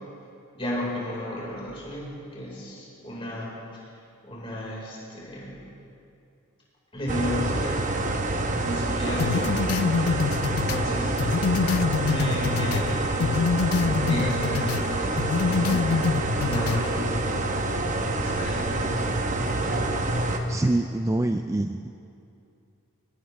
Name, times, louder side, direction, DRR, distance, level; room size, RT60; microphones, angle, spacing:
voice 1, 0.5-3.9 4.2-5.6 6.9-11.4 12.0-13.4 13.7-17.5 18.2-19.9, equal, 25° left, -5 dB, 4.8 m, -34 dB
sound 1, 7.1-20.4, right 2 dB, 35° right, 1.0 m, -27 dB
sound 2, 9.2-12.9 13.2-14.8 15.2-16.8, left 5 dB, 85° left, 0.4 m, -26 dB
voice 2, 20.5-21.9, right 2 dB, 15° right, 6 dB, 0.3 m, -25 dB
22.0 x 18.0 x 3.4 m, 2.6 s
head